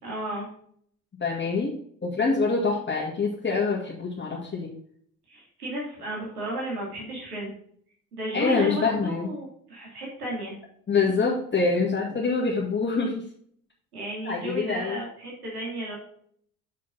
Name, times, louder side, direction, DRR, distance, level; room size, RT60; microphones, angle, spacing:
voice 1, 0.0-0.5 5.3-7.5 8.1-10.6 13.9-15.9, right 1 dB, 90° right, -4 dB, 2.8 m, -33 dB
voice 2, 1.2-1.7 2.0-4.7 8.3-9.3 10.9-13.2 14.2-15.0, left 4 dB, 25° left, -3 dB, 2.1 m, -25 dB
7.2 x 6.2 x 4.0 m, 0.63 s
hypercardioid pair, 60°, 44 cm